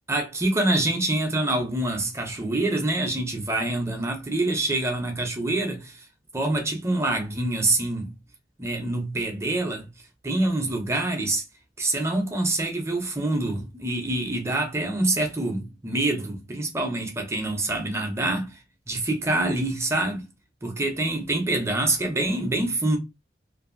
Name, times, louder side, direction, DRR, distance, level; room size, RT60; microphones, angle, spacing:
voice 1, 0.1-5.9 6.3-8.1 8.6-9.9 10.2-11.4 11.8-18.6 18.9-20.2 20.6-23.0, right 2 dB, 15° right, 0.6 m, -26 dB
2.6 x 2.5 x 2.5 m
head